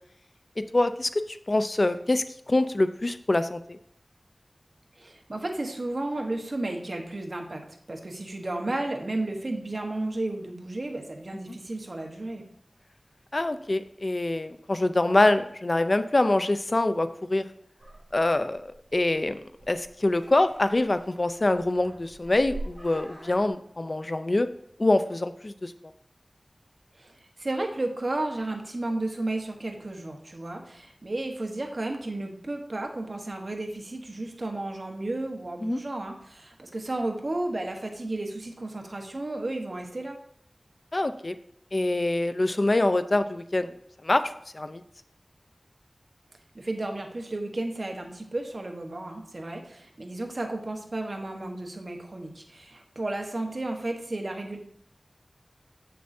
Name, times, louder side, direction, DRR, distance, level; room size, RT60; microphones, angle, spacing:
voice 1, 0.7-3.8 13.3-17.4 18.1-24.5 24.8-25.7 35.6-35.8 40.9-41.4 41.7-43.7 44.0-44.8, left 2 dB, 50° left, 11 dB, 0.4 m, -25 dB
voice 2, 5.0-12.4 26.9-40.2 46.5-54.6, right 2 dB, 55° right, 3 dB, 1.1 m, -33 dB
sound 1, 17.8-23.5, right 2 dB, 30° right, 2.3 m, -44 dB
7.6 x 6.8 x 2.6 m, 0.68 s
wide cardioid pair, 55°, 0 cm